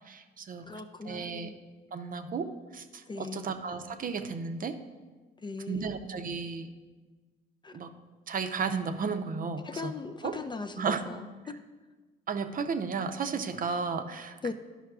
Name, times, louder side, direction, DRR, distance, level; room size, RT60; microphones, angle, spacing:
voice 1, 0.1-1.5 1.9-4.8 5.7-6.7 7.7-7.9 8.3-9.9 10.2-10.3 10.8-11.0 12.3-14.5, right 5 dB, 45° right, 7 dB, 0.6 m, -34 dB
voice 2, 0.7-1.6 3.1-3.5 5.4-6.0 7.6-7.8 9.6-11.6 14.4-14.5, left 4 dB, 25° left, 7 dB, 0.3 m, -39 dB
11.5 x 5.6 x 2.4 m, 1.3 s
cardioid pair, 90°, 20 cm